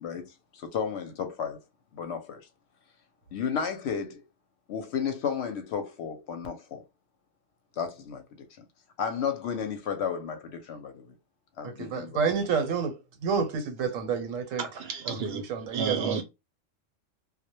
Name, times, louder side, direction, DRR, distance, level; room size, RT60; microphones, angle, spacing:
voice 1, 0.0-1.6 1.9-2.5 3.3-4.2 4.7-6.8 7.8-8.2 9.0-11.1 11.6-12.2, left 7 dB, 65° left, 0.8 m, -33 dB
voice 2, 11.6-14.7 15.1-16.2, right 6 dB, 90° right, 1.1 m, -29 dB
voice 3, 14.6-15.4 15.7-16.2, right 5 dB, 60° right, 0.7 m, -31 dB
2.2 x 2.1 x 2.8 m
omnidirectional pair, 1.3 m